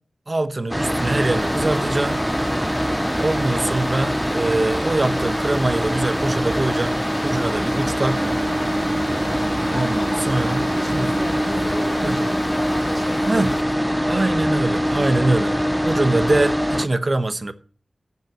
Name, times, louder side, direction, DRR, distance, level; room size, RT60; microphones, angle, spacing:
voice 1, 0.3-2.2 3.2-8.3 9.7-10.6 10.9-11.1 12.0-12.2 13.3-13.5 14.1-15.6 15.8-17.5, right 2 dB, 35° right, 0.9 m, -23 dB
sound 1, 0.7-16.9, equal, 5° right, 0.5 m, -23 dB
sound 2, 0.9-13.6, left 4 dB, 85° left, 1.6 m, -38 dB
Wind instrument woodwind instrument, 8.0-12.6, right 5 dB, 55° right, 0.9 m, -37 dB
voice 2, 9.7-14.5 14.9-15.8, left 2 dB, 40° left, 2.1 m, -35 dB
10.5 x 5.5 x 7.5 m
wide cardioid pair, 100°, 0 cm